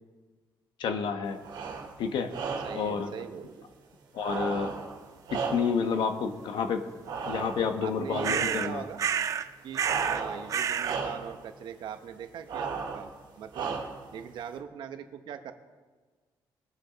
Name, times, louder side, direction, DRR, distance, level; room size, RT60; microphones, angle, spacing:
voice 1, 0.8-1.4 2.0-2.3 2.7-3.1 4.1-4.7 5.3-6.9 7.3-8.8, left 6 dB, 75° left, 7 dB, 1.1 m, -29 dB
sound 1, 1.4-1.9 2.3-2.9 4.2-5.9 7.0-7.8 8.1-8.6 9.8-10.5 10.8-11.3 12.5-13.1 13.5-14.1, right 5 dB, 90° right, 2.4 m, -34 dB
voice 2, 2.6-3.7 7.8-9.0 9.6-13.1 13.4-13.7 14.1-15.5, right 8 dB, 70° right, 8 dB, 1.0 m, -41 dB
sound 2, 8.2-8.7 9.0-9.5 9.7-10.2 10.5-11.0, right 8 dB, 45° right, 0.5 m, -29 dB
21.0 x 7.4 x 4.0 m, 1.4 s
cardioid pair, 165°, 8 cm